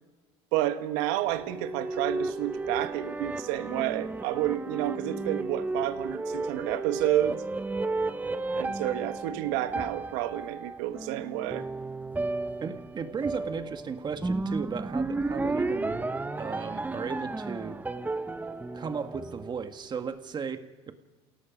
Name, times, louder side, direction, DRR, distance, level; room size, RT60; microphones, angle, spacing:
voice 1, 0.5-7.4 8.5-11.7, right 14 dB, 75° right, 10 dB, 1.5 m, -30 dB
sound 1, 1.3-19.9, right 3 dB, 10° right, 1.0 m, -33 dB
voice 2, 12.6-16.0 16.3-17.8 18.7-20.9, right 6 dB, 30° right, 8 dB, 1.7 m, -35 dB
28.5 x 17.5 x 5.2 m, 1.2 s
supercardioid pair, 100°, 14 cm